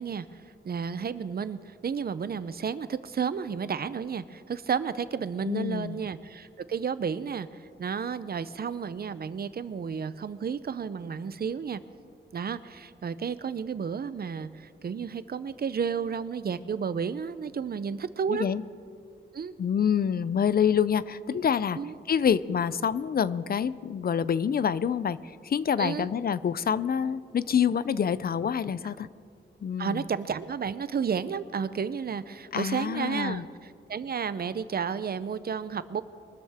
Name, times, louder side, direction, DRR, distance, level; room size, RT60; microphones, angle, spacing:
voice 1, 0.0-11.8 12.3-18.5 19.3-19.5 21.8-21.9 25.8-26.1 29.8-36.0, right 6 dB, 55° right, 14 dB, 0.5 m, -32 dB
voice 2, 5.5-6.0 18.3-18.6 19.6-21.8 22.1-29.1 29.6-30.0 32.5-33.4, left 7 dB, 55° left, 16 dB, 0.4 m, -27 dB
23.0 x 13.0 x 3.5 m, 2.3 s
wide cardioid pair, 130°, 19 cm